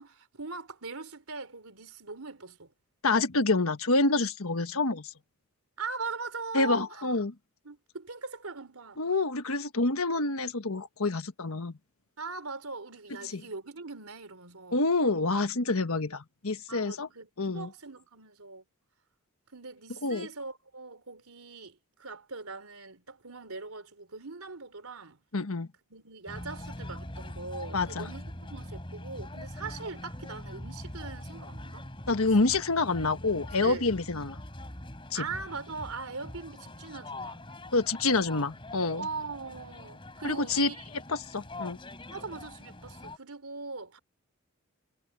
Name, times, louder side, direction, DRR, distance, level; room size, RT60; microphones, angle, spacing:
voice 1, 0.0-2.7 5.8-7.0 7.6-9.0 12.2-14.8 16.7-17.3 17.5-18.6 19.5-25.2 25.9-31.9 32.2-32.6 33.6-33.9 35.1-37.5 39.0-40.8 42.1-44.0, right 4 dB, 80° right, 3.3 m, -41 dB
voice 2, 3.0-5.1 6.5-7.3 9.0-11.8 13.3-13.4 14.7-17.1 17.4-17.7 20.0-20.3 25.3-25.7 27.7-28.1 32.1-34.4 35.1-35.3 37.7-39.1 40.2-40.7 41.1-41.8, left 3 dB, 75° left, 1.4 m, -27 dB
sound 1, 26.3-43.2, left 1 dB, 25° left, 3.2 m, -43 dB
head